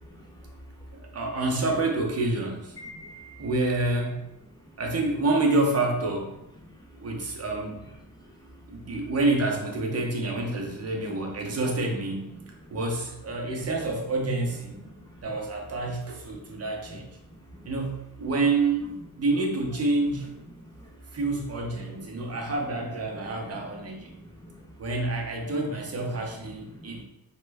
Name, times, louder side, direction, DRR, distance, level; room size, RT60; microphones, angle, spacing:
voice 1, 0.9-2.8 3.4-4.3 4.8-6.4 7.0-7.9 8.7-12.3 12.7-14.8 15.2-17.1 17.6-20.3 21.1-24.1 24.8-27.0, right 2 dB, 40° right, 0 dB, 0.6 m, -28 dB
voice 2, 2.8-3.5 6.8-6.9 8.2-8.5 12.7-12.8 14.9-15.1 16.5-16.6 17.3-17.7 20.8-20.9 24.4-24.6 26.8-27.0, equal, 10° left, -2 dB, 0.5 m, -47 dB
3.1 x 2.2 x 3.3 m, 0.89 s
wide cardioid pair, 140°, 40 cm